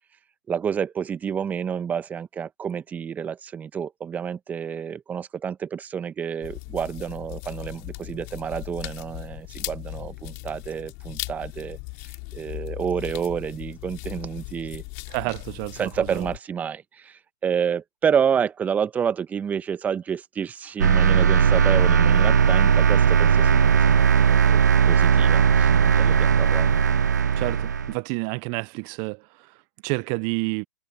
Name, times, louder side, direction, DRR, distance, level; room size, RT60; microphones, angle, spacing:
voice 1, 0.5-11.8 12.3-14.8 15.8-26.8, right 7 dB, 15° right, 1.5 m, -29 dB
sound 1, 6.4-16.4, left 36 dB, 40° left, 3.9 m, -37 dB
voice 2, 15.1-16.3 27.4-30.7, right 34 dB, 35° right, 0.7 m, -30 dB
sound 2, 20.8-27.9, right 7 dB, 75° right, 0.4 m, -18 dB
figure-of-eight pair, 115°, 9 cm